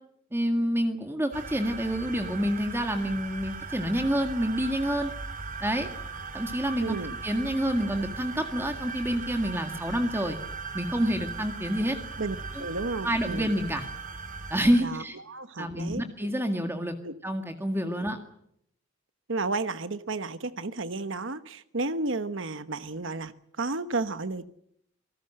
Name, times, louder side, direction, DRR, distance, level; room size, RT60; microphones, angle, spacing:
voice 1, 0.3-5.1 5.6-5.9 6.3-7.0 7.2-10.4 10.7-12.0 12.6-12.7 13.0-13.9 14.5-15.2 15.6-16.9 17.2-18.2, equal, 10° right, 5 dB, 1.9 m, -28 dB
sound 1, 1.3-14.8, right 4 dB, 40° right, 3.1 m, -38 dB
voice 2, 6.8-7.1 12.2-13.5 14.8-16.0 17.0-17.1 17.9-18.0 19.3-24.4, right 3 dB, 65° right, 12 dB, 1.1 m, -32 dB
27.5 x 19.0 x 7.8 m, 0.73 s
head